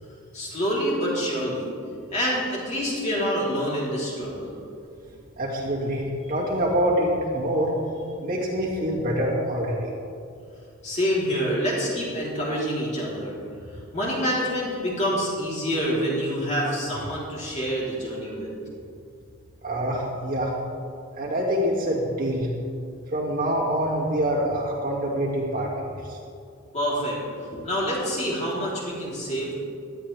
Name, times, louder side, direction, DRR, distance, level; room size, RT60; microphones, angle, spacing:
voice 1, 0.3-1.7 2.1-4.6 10.8-13.4 13.9-18.5 26.7-27.2 27.5-29.6, equal, 30° left, -6 dB, 3.7 m, -27 dB
voice 2, 5.4-7.8 8.2-9.9 19.6-20.5 21.1-22.5 23.1-26.2, equal, 40° right, -4 dB, 2.3 m, -25 dB
18.0 x 12.5 x 3.5 m, 2.4 s
head